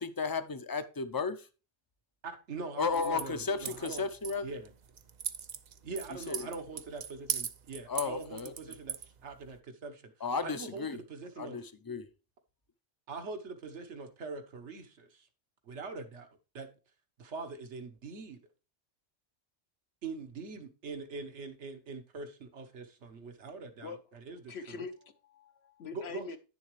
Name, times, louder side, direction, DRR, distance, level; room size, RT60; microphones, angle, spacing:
voice 1, 0.0-1.5 2.8-4.5 6.1-6.5 7.9-8.8 10.2-11.0 11.4-12.1, left 5 dB, 25° left, 0.5 m, -34 dB
voice 2, 2.2-4.0 4.4-4.7 5.8-8.9 9.2-10.1 10.4-11.6 13.1-15.3 15.7-16.3 16.5-16.7 17.2-18.4 20.0-23.9 24.3-24.4 24.7-24.8 25.9-26.2, right 4 dB, 75° right, 1.4 m, -42 dB
sound 1, 2.8-9.6, right 7 dB, 50° right, 0.5 m, -41 dB
voice 3, 23.8-24.1 24.5-26.4, left 5 dB, 65° left, 1.1 m, -44 dB
9.7 x 7.0 x 3.1 m
omnidirectional pair, 1.2 m